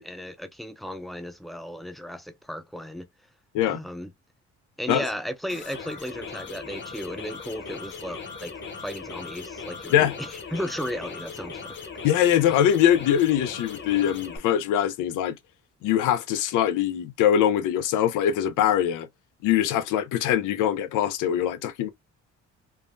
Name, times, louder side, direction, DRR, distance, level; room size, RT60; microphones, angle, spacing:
voice 1, 0.1-3.1 3.7-4.1 4.8-11.7, equal, ahead, 0.5 m, -35 dB
sound 1, 5.5-14.4, left 5 dB, 40° left, 1.0 m, -39 dB
voice 2, 12.0-15.4 15.8-19.1 19.4-21.9, left 10 dB, 90° left, 0.6 m, -22 dB
3.4 x 2.1 x 2.5 m
cardioid pair, 90°, 30 cm